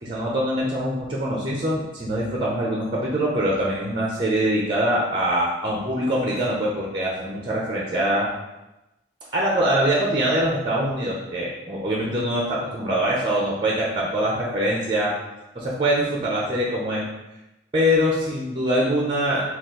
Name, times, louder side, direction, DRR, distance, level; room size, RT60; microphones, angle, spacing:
voice 1, 0.0-8.3 9.3-15.1 15.5-17.0 17.7-19.4, equal, 25° right, -3 dB, 0.5 m, -23 dB
4.2 x 2.3 x 3.7 m, 0.98 s
head